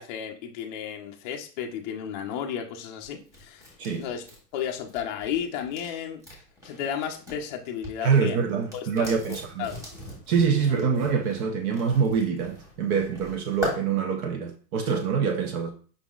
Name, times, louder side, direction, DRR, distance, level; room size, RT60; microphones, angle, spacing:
voice 1, 0.0-3.7 4.0-4.2 4.5-6.2 6.6-8.4 8.7-9.9 10.6-10.7, left 8 dB, 30° left, 0.4 m, -33 dB
sound 1, 3.0-7.4 7.7-13.8, left 2 dB, 5° right, 1.2 m, -40 dB
voice 2, 8.0-9.6 10.3-15.7, right 6 dB, 60° right, 0.8 m, -25 dB
5.2 x 3.6 x 2.3 m
supercardioid pair, 145°, 49 cm